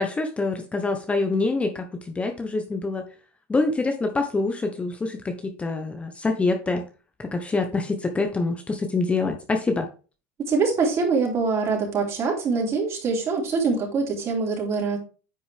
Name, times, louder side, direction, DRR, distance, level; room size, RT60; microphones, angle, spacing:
voice 1, 0.0-1.9 2.1-3.0 3.5-6.8 7.3-9.9, left 3 dB, 15° left, 5 dB, 1.2 m, -25 dB
voice 2, 10.4-15.0, right 4 dB, 40° right, -1 dB, 4.1 m, -24 dB
9.6 x 5.3 x 3.6 m, 0.35 s
supercardioid pair, 110°, 8 cm